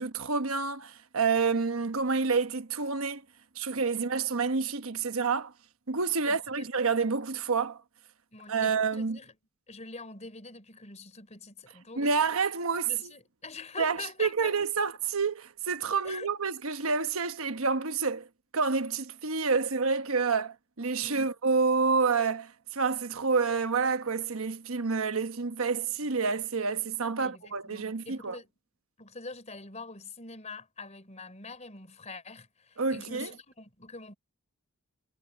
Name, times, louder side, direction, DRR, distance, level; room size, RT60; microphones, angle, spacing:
voice 1, 0.0-3.2 3.6-5.5 5.9-7.8 8.5-9.2 12.0-13.1 13.8-18.3 18.5-28.4 32.8-33.3, right 5 dB, 75° right, 1.1 m, -28 dB
voice 2, 6.2-6.7 8.3-9.3 9.7-12.1 12.8-14.6 16.0-16.3 21.0-21.2 27.2-28.5 29.0-34.1, left 4 dB, 30° left, 4.6 m, -44 dB
head